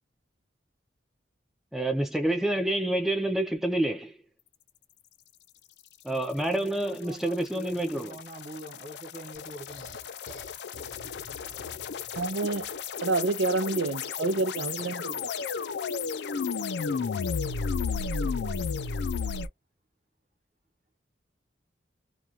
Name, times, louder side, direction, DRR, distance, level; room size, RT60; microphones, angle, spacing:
voice 1, 1.7-4.2 6.0-8.1, right 1 dB, ahead, 0.4 m, -28 dB
voice 2, 6.0-10.0, right 1 dB, 40° right, 1.0 m, -44 dB
sound 1, 7.2-19.5, left 5 dB, 65° left, 0.4 m, -33 dB
sound 2, 9.3-12.9, left 2 dB, 85° left, 0.8 m, -49 dB
voice 3, 12.2-12.7 13.0-15.3, right 3 dB, 85° right, 0.5 m, -28 dB
2.4 x 2.3 x 2.6 m
head